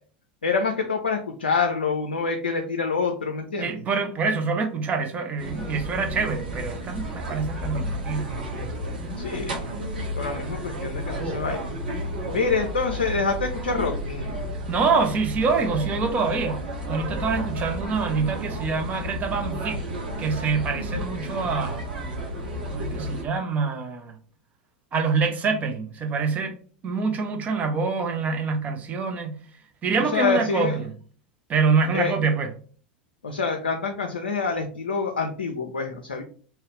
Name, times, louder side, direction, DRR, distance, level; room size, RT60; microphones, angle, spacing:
voice 1, 0.4-3.7 9.2-9.8 10.2-11.7 12.3-14.4 30.1-30.8 31.9-32.1 33.2-36.2, left 4 dB, 80° left, 0.4 m, -26 dB
voice 2, 3.6-8.3 14.7-16.6 16.9-19.8 20.2-21.8 22.7-24.2 24.9-26.6 26.8-29.4 29.8-30.9 31.5-32.5, right 4 dB, 30° right, 0.7 m, -25 dB
sound 1, 5.4-23.2, equal, 70° right, 0.8 m, -32 dB
2.8 x 2.4 x 3.1 m
figure-of-eight pair, 85°, 5 cm